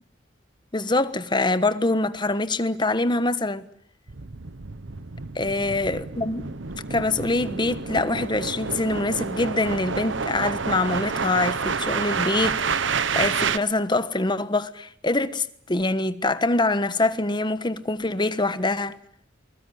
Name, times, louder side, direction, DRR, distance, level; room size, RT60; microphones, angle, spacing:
voice 1, 0.7-3.6 5.3-6.5 6.9-19.0, left 2 dB, 25° left, 1.4 m, -24 dB
sound 1, 4.1-13.6, right 5 dB, 80° right, 1.0 m, -29 dB
22.5 x 21.5 x 9.5 m
head